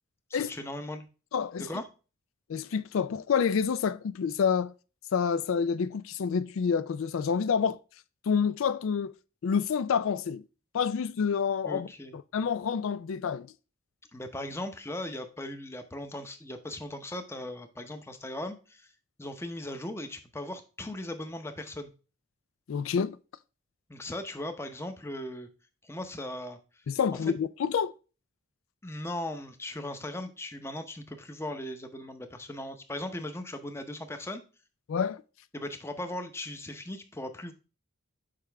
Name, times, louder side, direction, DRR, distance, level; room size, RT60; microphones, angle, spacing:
voice 1, 0.3-1.1 1.6-1.8 11.7-12.2 14.1-18.9 19.2-21.9 23.9-25.5 25.8-26.6 27.2-27.3 28.8-34.4 35.5-37.5, left 1 dB, 10° left, 0.7 m, -38 dB
voice 2, 1.3-1.7 2.5-4.7 5.1-7.8 8.3-9.1 9.4-10.4 10.7-13.5 22.7-23.2 26.9-27.9 34.9-35.2, left 6 dB, 85° left, 0.4 m, -28 dB
6.6 x 4.9 x 3.3 m
head